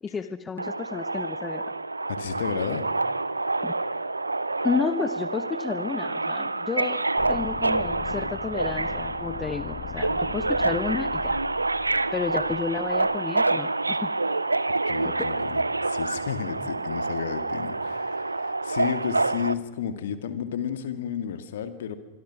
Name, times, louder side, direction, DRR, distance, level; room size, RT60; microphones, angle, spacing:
voice 1, 0.0-1.6 3.6-3.7 4.6-7.0 7.3-11.4 12.1-14.1 15.0-15.3, left 5 dB, 15° left, 13 dB, 1.1 m, -31 dB
Subway metro underground, 0.6-19.5, right 2 dB, 80° right, 0.7 m, -27 dB
voice 2, 2.1-2.9 14.8-22.0, left 8 dB, 60° left, 11 dB, 2.1 m, -32 dB
sound 1, 7.2-13.2, left 13 dB, 40° left, 1.5 m, -40 dB
26.5 x 22.0 x 6.1 m, 1.1 s
figure-of-eight pair, 90°, 0 cm